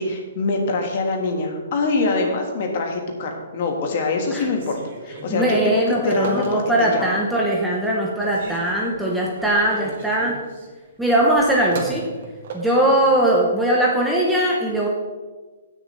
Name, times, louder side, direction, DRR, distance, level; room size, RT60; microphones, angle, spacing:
voice 1, 0.0-4.8 5.0-7.1, left 3 dB, 40° left, 3 dB, 1.7 m, -24 dB
Telephone, 4.5-7.0 7.4-7.9 8.2-13.2, right 3 dB, 45° right, 2.0 m, -37 dB
voice 2, 5.3-10.4 11.0-12.0 12.5-14.9, right 1 dB, ahead, -3 dB, 0.9 m, -20 dB
16.5 x 6.6 x 3.3 m, 1.4 s
hypercardioid pair, 170°, 0 cm